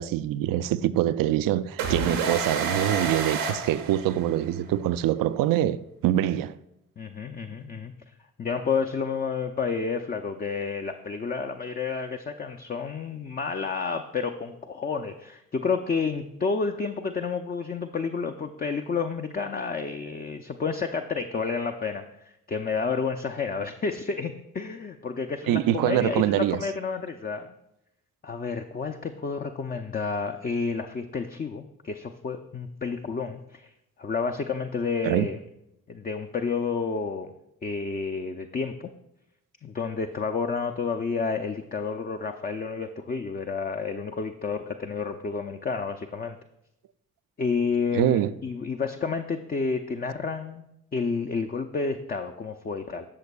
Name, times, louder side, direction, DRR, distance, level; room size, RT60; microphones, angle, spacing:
voice 1, 0.0-6.5 25.5-26.6 35.0-35.3 47.9-48.3, right 12 dB, 55° right, 0.5 m, -24 dB
sound 1, 1.8-4.6, right 4 dB, 85° right, 1.2 m, -29 dB
voice 2, 7.0-7.9 8.4-27.5 28.2-33.7 34.0-35.4 35.9-37.3 37.6-38.9 39.6-46.4 47.4-50.6 50.9-53.1, left 5 dB, 25° left, 0.5 m, -30 dB
12.0 x 6.4 x 2.3 m
hypercardioid pair, 40°, 40 cm